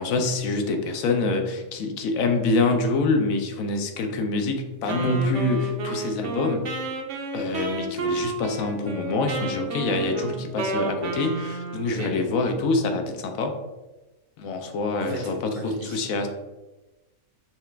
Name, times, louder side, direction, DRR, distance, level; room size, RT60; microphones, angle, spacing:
voice 1, 0.0-6.6 7.3-13.6 14.4-16.3, left 3 dB, 75° left, 5 dB, 1.0 m, -25 dB
Wind instrument woodwind instrument, 4.9-12.0, right 3 dB, 65° right, 0.9 m, -31 dB
voice 2, 15.0-16.2, right 2 dB, 50° right, 0 dB, 0.6 m, -36 dB
5.8 x 2.4 x 3.3 m, 1.1 s
omnidirectional pair, 1.5 m